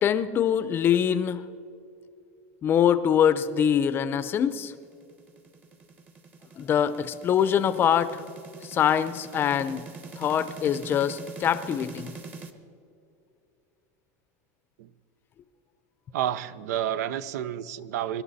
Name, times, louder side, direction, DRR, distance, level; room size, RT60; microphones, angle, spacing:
voice 1, 0.0-1.4 2.6-4.7 6.6-8.2 8.7-9.8 10.2-12.1, left 9 dB, 25° left, 13 dB, 0.6 m, -24 dB
sound 1, 4.4-12.5, right 4 dB, 20° right, 1.0 m, -44 dB
voice 2, 16.1-18.2, right 10 dB, 80° right, 16 dB, 0.6 m, -30 dB
24.5 x 12.0 x 4.1 m, 2.5 s
supercardioid pair, 160°, 9 cm